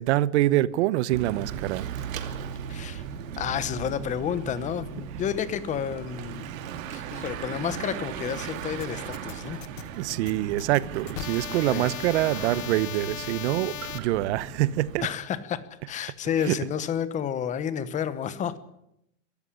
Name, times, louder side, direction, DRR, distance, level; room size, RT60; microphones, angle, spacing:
voice 1, 0.0-1.9 10.0-15.1 16.4-16.6, right 15 dB, 60° right, 1.0 m, -25 dB
Bicycle / Mechanisms, 1.1-15.1, right 8 dB, 90° right, 2.6 m, -37 dB
voice 2, 2.7-3.0 3.4-6.4 6.9-9.6 11.7-11.9 15.0-18.6, left 8 dB, 20° left, 1.0 m, -30 dB
sound 1, 8.8-14.0, left 12 dB, 75° left, 1.7 m, -38 dB
22.5 x 13.5 x 10.0 m
supercardioid pair, 170°, 39 cm